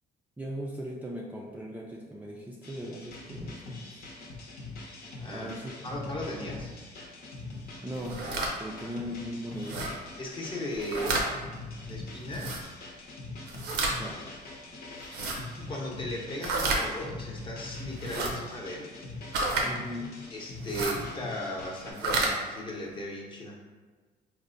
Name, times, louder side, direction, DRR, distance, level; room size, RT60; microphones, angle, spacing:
voice 1, 0.4-4.1 5.3-5.7 7.8-8.3 8.6-10.0 13.9-14.3 19.6-20.2, equal, 10° right, -4 dB, 0.3 m, -38 dB
sound 1, 2.6-21.9, left 2 dB, 65° left, 0.8 m, -43 dB
voice 2, 5.2-5.6 5.8-6.7 8.8-8.9 10.2-11.3 11.9-12.6 15.3-18.9 20.3-23.6, left 1 dB, 30° left, -2 dB, 0.8 m, -37 dB
sound 2, 8.0-8.5 9.6-9.9 10.7-11.3 12.3-12.6 13.5-14.0 15.0-15.4 16.4-16.8 18.0-18.3 19.3-19.7 20.6-21.0 21.9-22.3, right 3 dB, 80° right, 0.6 m, -30 dB
4.3 x 2.1 x 2.5 m, 1.4 s
cardioid pair, 110°, 17 cm